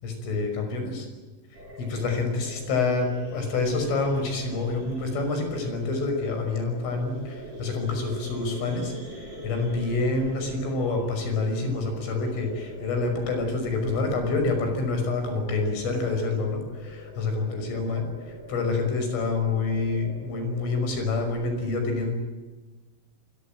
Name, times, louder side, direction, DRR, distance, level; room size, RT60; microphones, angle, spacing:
voice 1, 0.0-1.1 1.8-22.2, left 3 dB, 70° left, 5 dB, 8.2 m, -27 dB
sound 1, 1.5-21.5, left 1 dB, 20° right, 7.6 m, -43 dB
26.5 x 23.0 x 9.0 m, 1.2 s
omnidirectional pair, 5.9 m